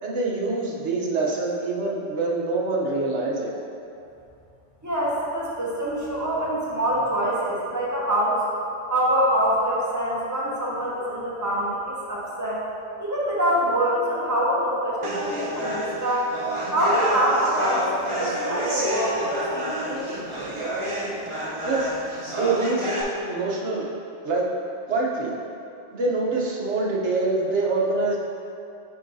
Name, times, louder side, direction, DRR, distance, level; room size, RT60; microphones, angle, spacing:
voice 1, 0.0-3.5 21.6-22.9 23.3-23.9 24.2-24.5 24.9-25.3 25.9-28.2, right 3 dB, 65° right, -3 dB, 1.2 m, -25 dB
voice 2, 4.8-8.4 8.9-11.8 12.1-12.7 13.0-16.3 16.7-20.2, equal, 15° right, -7 dB, 1.0 m, -25 dB
sound 1, 15.0-23.0, right 1 dB, 30° right, 0.7 m, -29 dB
9.6 x 3.8 x 2.7 m, 2.6 s
omnidirectional pair, 1.3 m